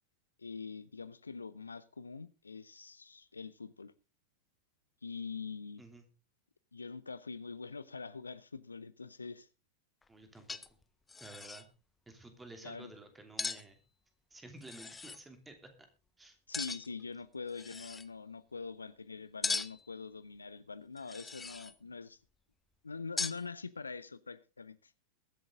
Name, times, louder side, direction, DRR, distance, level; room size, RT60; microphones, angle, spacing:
voice 1, 0.4-3.9 5.0-5.8 6.7-9.5 12.6-12.9 16.5-22.2 22.8-24.9, left 4 dB, 75° left, 0.6 m, -44 dB
sound 1, 10.0-10.1 10.5-10.8 11.1-11.7 13.4-13.6 14.6-15.2 16.5-17.0 17.5-18.1 19.4-19.9 21.0-21.8 23.2-23.4, left 4 dB, 15° left, 0.7 m, -39 dB
voice 2, 10.1-10.8 11.2-11.7 12.1-13.8 14.3-15.7 16.2-16.4, right 2 dB, 10° right, 2.8 m, -52 dB
22.5 x 7.9 x 3.7 m
figure-of-eight pair, 90°, 0 cm